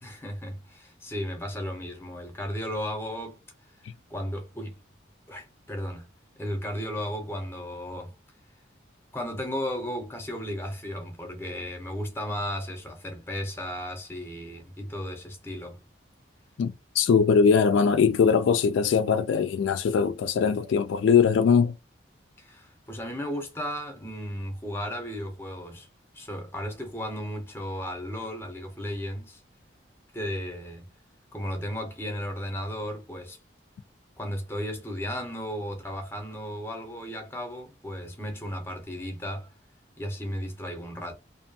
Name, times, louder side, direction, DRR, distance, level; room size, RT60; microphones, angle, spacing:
voice 1, 0.0-3.4 4.1-4.8 5.3-6.1 6.4-8.1 9.1-15.8 22.4-25.9 26.1-29.4 30.1-30.9 31.3-33.4 34.2-39.5 40.0-41.1, equal, 10° left, 0.6 m, -35 dB
voice 2, 16.6-21.7, left 6 dB, 75° left, 0.3 m, -21 dB
2.6 x 2.3 x 2.6 m
head